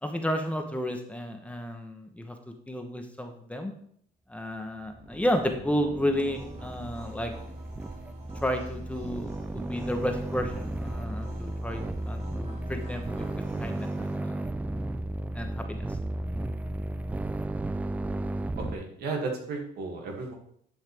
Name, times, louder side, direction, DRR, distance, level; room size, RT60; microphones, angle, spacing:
voice 1, 0.0-3.7 4.3-7.3 8.3-14.5 15.3-16.0, equal, 10° left, 5 dB, 1.0 m, -32 dB
sound 1, 4.9-18.8, right 1 dB, 10° right, 0.3 m, -34 dB
sound 2, 6.3-14.2, right 2 dB, 40° right, 2.3 m, -48 dB
voice 2, 18.6-20.3, right 3 dB, 70° right, 1 dB, 2.4 m, -34 dB
11.0 x 5.6 x 3.5 m, 0.65 s
cardioid pair, 110°, 17 cm